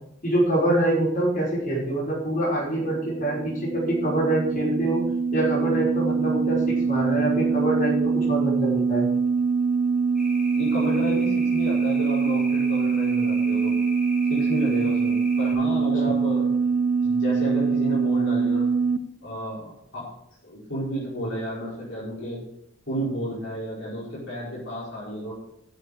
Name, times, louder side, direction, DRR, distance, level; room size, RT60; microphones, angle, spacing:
voice 1, 0.2-5.0 5.3-6.6 6.9-9.1 16.0-16.1, right 1 dB, 45° left, -6 dB, 5.8 m, -25 dB
sound 1, 2.8-19.0, right 5 dB, 80° right, 0.7 m, -24 dB
sound 2, 10.2-15.5, equal, 5° right, 4.1 m, -40 dB
voice 2, 10.5-13.8 14.3-16.5 17.0-18.7 19.2-20.1 20.4-22.4 22.9-25.3, equal, 65° left, -7 dB, 5.1 m, -32 dB
10.5 x 7.2 x 6.8 m, 0.76 s
head